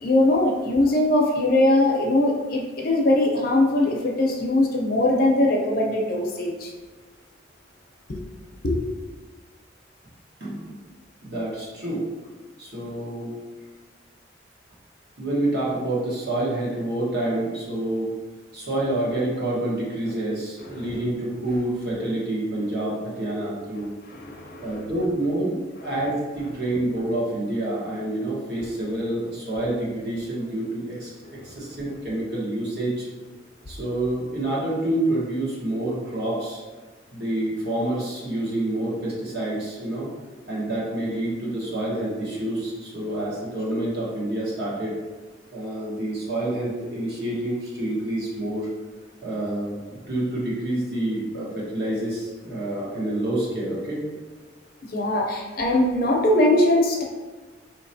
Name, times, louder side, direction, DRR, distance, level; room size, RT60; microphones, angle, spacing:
voice 1, 0.0-6.7 8.1-8.2 8.6-8.8 20.7-20.8 24.1-24.8 54.9-57.0, left 1 dB, 50° left, 0 dB, 0.6 m, -21 dB
voice 2, 10.4-10.8 11.2-12.0 12.6-13.3 15.2-18.1 18.5-23.9 24.6-31.1 31.4-33.1 33.7-36.6 37.1-40.1 40.5-44.9 45.5-48.7 49.2-54.0, right 1 dB, 60° right, -6 dB, 1.2 m, -27 dB
4.3 x 2.9 x 2.7 m, 1.3 s
head